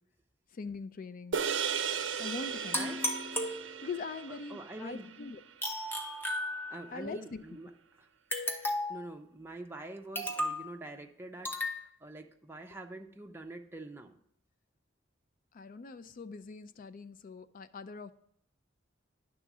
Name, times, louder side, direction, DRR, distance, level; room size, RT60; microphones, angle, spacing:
voice 1, 0.5-1.4 2.2-3.0 3.8-5.4 6.9-7.4 15.5-18.1, left 4 dB, 45° left, 13 dB, 0.4 m, -42 dB
sound 1, 1.3-5.9, right 6 dB, 65° right, 0.5 m, -36 dB
sound 2, 2.7-4.1 5.6-7.0 8.3-9.1 10.1-10.7 11.4-11.8, left 1 dB, 10° left, 0.9 m, -34 dB
voice 2, 4.3-5.1 6.7-7.7 8.0-8.1 8.7-14.2, right 2 dB, 10° right, 3 dB, 0.6 m, -46 dB
10.5 x 3.6 x 6.0 m, 0.70 s
head